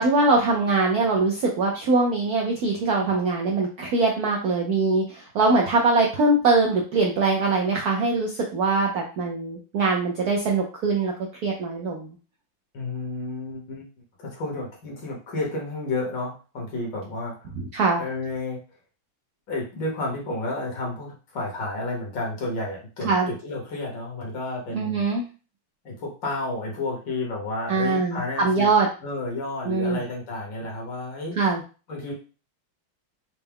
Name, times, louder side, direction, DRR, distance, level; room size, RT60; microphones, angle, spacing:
voice 1, 0.0-11.1 11.4-12.1 17.7-18.0 23.1-23.3 24.7-25.2 27.7-28.9 29.7-30.0 31.4-31.6, right 3 dB, 80° right, 0 dB, 0.8 m, -22 dB
voice 2, 12.7-13.9 14.2-17.3 18.0-18.6 19.5-25.1 25.8-28.7 29.0-31.4 31.9-32.1, left 2 dB, 60° left, -2 dB, 1.7 m, -31 dB
4.5 x 2.1 x 3.5 m, 0.35 s
omnidirectional pair, 2.3 m